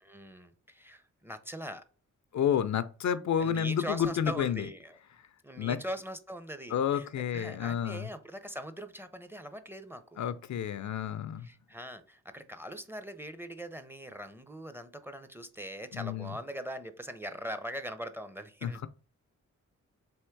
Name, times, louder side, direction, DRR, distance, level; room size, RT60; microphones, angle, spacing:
voice 1, 0.0-1.8 3.4-5.0 5.4-10.2 11.4-18.8, equal, 5° right, 0.5 m, -41 dB
voice 2, 2.3-4.7 5.6-5.8 6.7-8.1 10.2-11.5 15.9-16.4 18.6-18.9, left 8 dB, 65° left, 0.5 m, -30 dB
3.5 x 3.0 x 4.5 m
cardioid pair, 60°, 31 cm